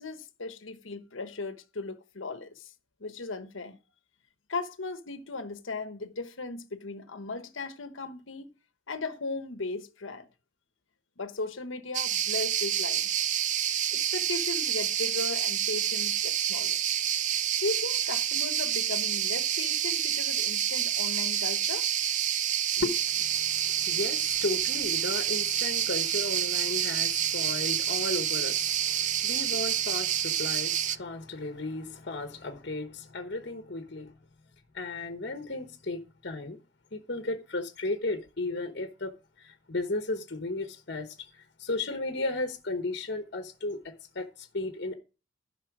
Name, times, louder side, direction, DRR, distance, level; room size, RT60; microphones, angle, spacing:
voice 1, 0.0-2.7 3.0-3.8 4.5-8.5 8.9-10.3 11.2-13.1 13.9-16.8 17.6-21.9, left 3 dB, 80° left, 1.1 m, -37 dB
sound 1, 11.9-31.0, right 10 dB, 40° right, 0.4 m, -28 dB
voice 2, 22.8-34.1 34.7-36.6 36.9-39.1 39.4-45.0, left 2 dB, 55° left, 1.2 m, -35 dB
11.5 x 5.7 x 6.0 m
head